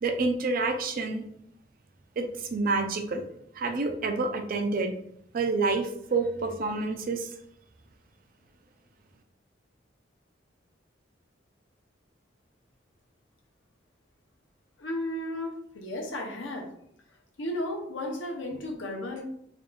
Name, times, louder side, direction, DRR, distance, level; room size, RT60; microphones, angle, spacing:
voice 1, 0.0-1.3 2.2-3.2 3.5-4.9 5.3-7.3, right 3 dB, 50° right, 6 dB, 0.5 m, -28 dB
voice 2, 14.8-16.7 17.4-19.2, left 1 dB, 75° left, 2 dB, 0.8 m, -34 dB
3.7 x 2.4 x 3.7 m, 0.72 s
head